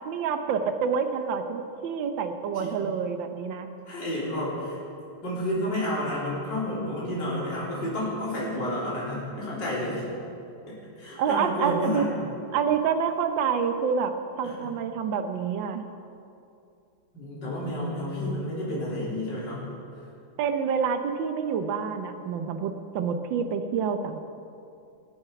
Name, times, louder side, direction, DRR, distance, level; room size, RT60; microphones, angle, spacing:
voice 1, 0.1-3.7 11.2-12.1 12.5-14.1 14.4-15.9 20.4-24.2, right 6 dB, 75° right, 7 dB, 1.6 m, -27 dB
voice 2, 3.9-4.8 5.2-10.1 10.7-12.1 14.4-14.7 17.1-19.6, left 1 dB, 65° left, -7 dB, 4.2 m, -30 dB
21.0 x 8.9 x 5.9 m, 2.6 s
omnidirectional pair, 2.1 m